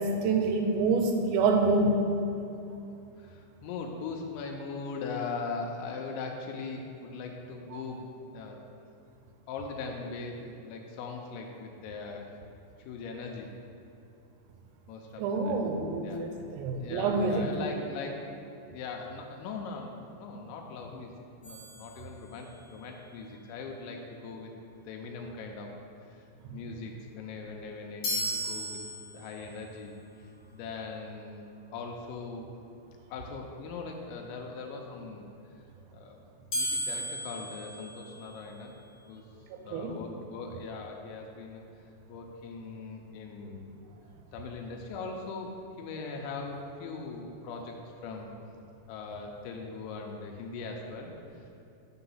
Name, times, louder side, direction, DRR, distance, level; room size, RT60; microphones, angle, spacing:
voice 1, 0.0-2.0 7.7-7.8 15.2-17.5 39.7-39.9, right 3 dB, 85° right, 4 dB, 2.9 m, -27 dB
voice 2, 3.2-8.1 8.3-8.6 9.5-12.4 12.9-13.5 14.9-15.6 16.0-16.2 16.8-18.2 18.7-21.1 21.4-24.5 24.9-25.7 26.1-26.2 26.5-28.8 29.1-31.4 31.7-32.5 33.1-35.6 35.9-36.2 36.5-38.8 39.1-39.2 39.6-41.6 42.1-43.8 44.3-48.3 48.9-51.5, left 4 dB, 85° left, 1 dB, 3.0 m, -40 dB
sound 1, 21.4-22.7 28.0-29.5 36.5-38.6, equal, 70° left, 1.2 m, -35 dB
6.8 x 5.8 x 5.5 m, 2.7 s
omnidirectional pair, 5.2 m